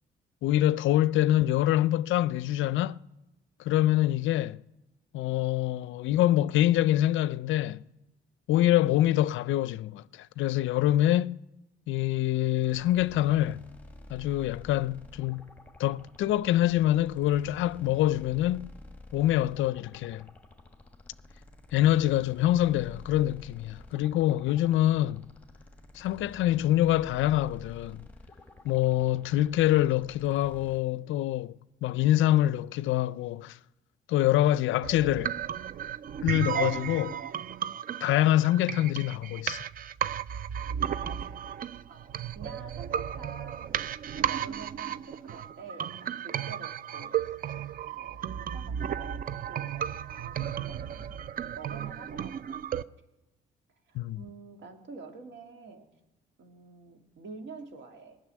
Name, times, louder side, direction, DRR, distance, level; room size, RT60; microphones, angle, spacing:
voice 1, 0.4-3.0 3.6-4.6 5.1-7.8 8.5-11.4 11.9-13.6 14.1-15.5 15.8-18.7 19.1-20.3 21.7-25.3 25.9-28.0 28.6-31.5 31.8-33.6 34.1-35.4 36.2-37.2 38.0-39.6 53.9-54.2, left 13 dB, 75° left, 0.4 m, -25 dB
sound 1, 12.6-30.8, left 2 dB, 10° left, 1.4 m, -50 dB
sound 2, 34.8-52.8, right 9 dB, 45° right, 0.4 m, -34 dB
voice 2, 41.0-41.5 41.9-43.8 44.1-52.9 53.9-55.9 56.4-58.2, right 4 dB, 65° right, 2.1 m, -48 dB
19.0 x 6.6 x 9.9 m
cardioid pair, 90°, 20 cm